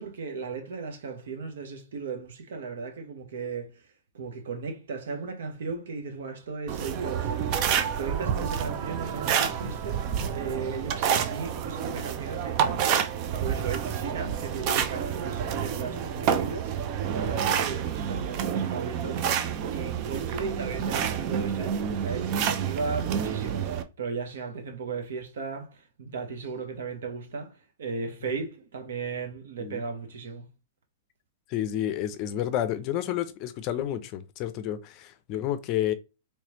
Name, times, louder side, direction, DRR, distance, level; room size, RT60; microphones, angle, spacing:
voice 1, 0.0-3.8 4.1-7.6 7.8-16.7 17.1-19.3 19.7-21.8 22.0-27.5 27.8-30.5, right 5 dB, 75° right, 1.1 m, -36 dB
sound 1, 6.7-23.8, right 8 dB, 45° right, 0.5 m, -29 dB
voice 2, 31.5-35.9, left 11 dB, 40° left, 0.5 m, -30 dB
3.2 x 3.1 x 3.0 m
hypercardioid pair, 125°, 0 cm